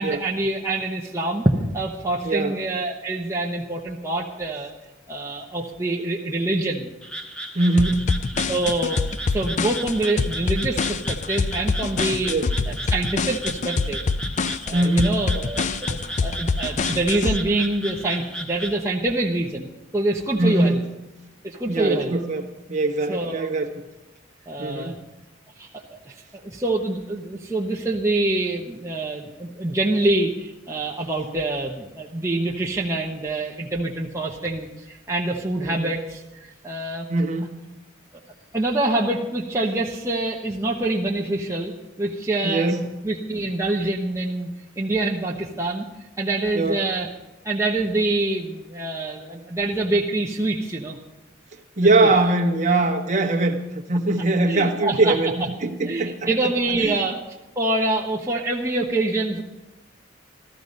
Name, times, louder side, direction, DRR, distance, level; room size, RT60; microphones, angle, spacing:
voice 1, 0.0-4.7 5.1-6.9 8.5-12.3 12.7-14.0 14.7-20.8 21.4-22.1 23.1-23.5 24.5-25.0 25.6-37.1 38.5-41.7 42.0-44.5 44.8-45.8 46.2-47.1 47.4-51.0 51.8-52.3 54.4-55.5 55.9-57.2 57.6-59.4, right 2 dB, 15° right, -3 dB, 1.0 m, -25 dB
voice 2, 2.2-2.6 7.5-8.1 12.3-12.5 14.7-15.2 20.4-20.8 21.7-22.4 22.7-23.7 24.6-24.9 35.6-35.9 37.1-37.6 42.4-42.9 46.5-46.8 51.8-55.3 55.6-57.0, right 2 dB, 35° right, 2 dB, 1.3 m, -22 dB
Frog, 7.0-18.8, right 1 dB, 5° left, 1.3 m, -35 dB
sound 1, 7.8-17.4, left 4 dB, 40° left, 0.4 m, -25 dB
14.0 x 14.0 x 5.3 m, 1.0 s
head